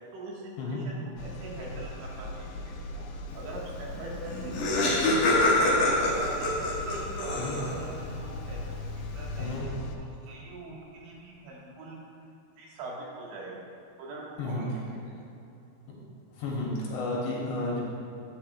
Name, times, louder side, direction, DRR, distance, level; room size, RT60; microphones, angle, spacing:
voice 1, 0.1-5.3 5.6-12.0 12.6-13.7 14.0-15.1, right 2 dB, 75° right, -4 dB, 3.7 m, -42 dB
sound 1, 1.2-10.0, left 1 dB, 90° left, 3.1 m, -39 dB
Laughter, 4.0-4.1 4.2-7.9, left 2 dB, 60° left, 2.4 m, -25 dB
voice 2, 16.3-17.8, left 2 dB, 75° left, -4 dB, 3.6 m, -32 dB
11.5 x 9.4 x 2.2 m, 2.8 s
omnidirectional pair, 5.4 m